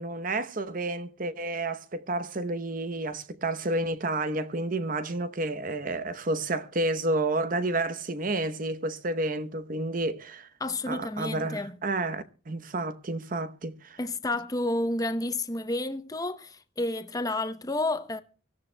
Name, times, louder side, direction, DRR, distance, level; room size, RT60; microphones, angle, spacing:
voice 1, 0.0-10.5 10.9-14.0, right 2 dB, 45° right, 0.9 m, -30 dB
voice 2, 10.6-11.7 14.0-18.2, left 2 dB, 20° left, 0.7 m, -30 dB
24.0 x 14.0 x 2.2 m
head